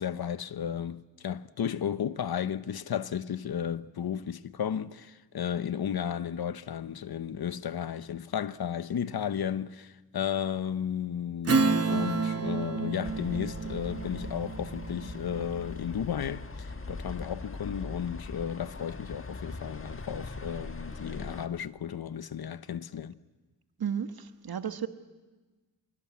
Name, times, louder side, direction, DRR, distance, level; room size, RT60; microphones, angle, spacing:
voice 1, 0.0-23.2, left 8 dB, 90° left, 0.8 m, -34 dB
Strum, 11.5-16.4, right 4 dB, 40° right, 0.9 m, -30 dB
sound 1, 13.0-21.5, left 3 dB, 35° left, 1.5 m, -41 dB
voice 2, 23.8-24.9, right 8 dB, 80° right, 1.4 m, -33 dB
25.0 x 23.0 x 8.4 m
wide cardioid pair, 70°, 36 cm